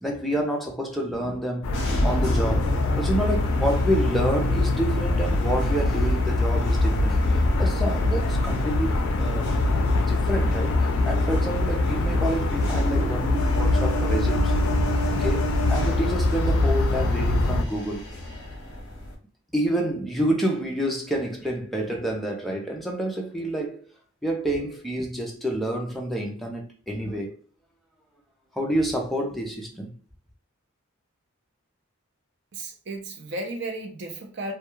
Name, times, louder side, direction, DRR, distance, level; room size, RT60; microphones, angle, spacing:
voice 1, 0.0-7.2 7.6-9.6 10.1-14.6 15.1-18.0 19.5-23.8 24.2-27.4 28.5-29.9, right 1 dB, ahead, 0.4 m, -28 dB
sound 1, 1.6-17.6, left 2 dB, 85° left, 0.3 m, -23 dB
sound 2, 1.7-19.1, equal, 55° left, 0.7 m, -32 dB
voice 2, 32.5-34.5, right 2 dB, 50° right, 0.5 m, -34 dB
2.2 x 2.2 x 2.9 m
head